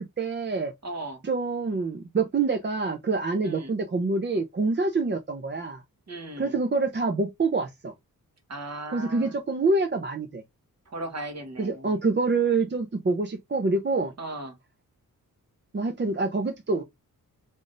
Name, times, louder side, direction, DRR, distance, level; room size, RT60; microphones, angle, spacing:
voice 1, 0.0-0.7 1.2-5.8 6.4-7.9 8.9-10.4 11.6-14.1 15.7-16.8, right 3 dB, 30° right, 0.6 m, -26 dB
voice 2, 0.8-1.2 3.4-3.7 6.1-6.6 8.5-9.3 10.9-11.9 14.2-14.6, right 2 dB, 45° right, 1.3 m, -37 dB
3.9 x 3.5 x 2.5 m
cardioid pair, 75°, 37 cm